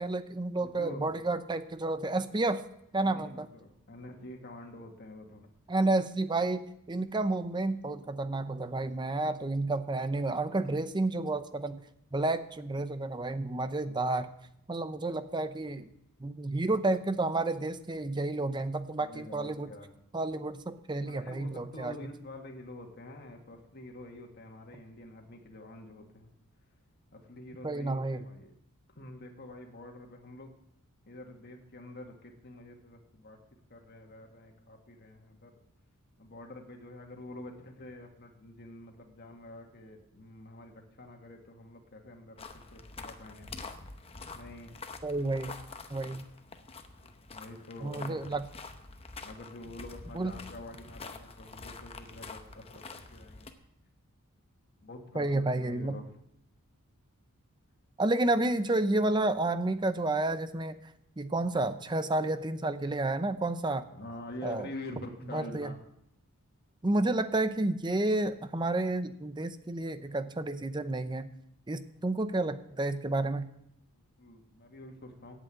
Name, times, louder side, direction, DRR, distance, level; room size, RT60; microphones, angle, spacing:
voice 1, 0.0-2.6 2.9-3.5 5.7-11.8 12.1-14.3 14.7-15.9 16.2-19.7 20.1-21.9 27.6-28.2 45.0-45.6 45.9-46.2 47.8-48.4 50.1-50.3 55.1-56.0 58.0-60.8 61.2-63.9 64.4-64.7 65.3-65.7 66.8-71.3 71.7-73.5, right 2 dB, 20° right, 11 dB, 0.6 m, -30 dB
voice 2, 0.6-1.2 3.0-5.5 13.9-14.0 19.1-19.9 21.0-26.3 27.1-28.5 29.0-30.5 31.1-33.4 33.7-35.6 36.2-43.5 44.4-44.8 47.0-48.3 49.2-53.5 54.8-56.1 63.9-65.8 73.9-75.4, left 1 dB, 45° left, 2 dB, 1.8 m, -47 dB
sound 1, 42.4-53.5, left 3 dB, 25° left, 0.9 m, -46 dB
11.0 x 8.0 x 8.8 m, 0.77 s
head